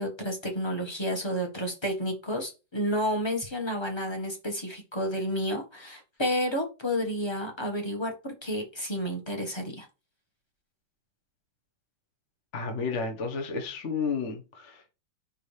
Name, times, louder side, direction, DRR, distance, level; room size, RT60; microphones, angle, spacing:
voice 1, 0.0-9.9, equal, 15° left, 1.2 m, -31 dB
voice 2, 12.5-14.9, left 5 dB, 40° left, 1.4 m, -32 dB
5.5 x 5.2 x 3.3 m
omnidirectional pair, 2.1 m